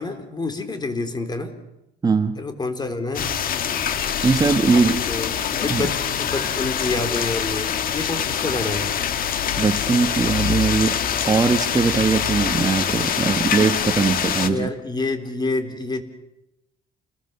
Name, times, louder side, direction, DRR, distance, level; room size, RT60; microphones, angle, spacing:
voice 1, 0.0-1.6 2.4-3.3 4.6-9.0 14.4-16.0, left 3 dB, 25° left, 7 dB, 3.7 m, -28 dB
voice 2, 2.0-2.4 4.2-5.0 5.7-5.8 9.6-11.0 11.2-14.7, right 4 dB, 20° right, 7 dB, 1.4 m, -20 dB
sound 1, 3.1-14.5, left 8 dB, 55° left, 2.1 m, -24 dB
30.0 x 21.0 x 7.0 m, 0.88 s
cardioid pair, 110°, 17 cm